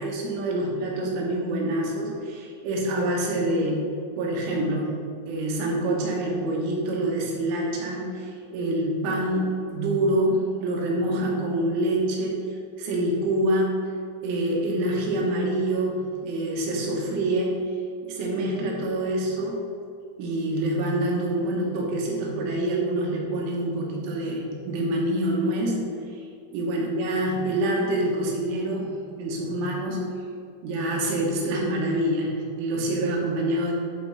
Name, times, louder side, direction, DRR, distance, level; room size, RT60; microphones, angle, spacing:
voice 1, 0.0-3.9 4.2-4.9 5.3-12.5 12.8-13.8 14.2-17.6 18.0-19.6 20.2-25.8 26.5-28.9 29.2-30.1 30.6-33.7, right 1 dB, 85° right, -2 dB, 3.8 m, -26 dB
10.5 x 4.1 x 4.0 m, 2.3 s
omnidirectional pair, 5.5 m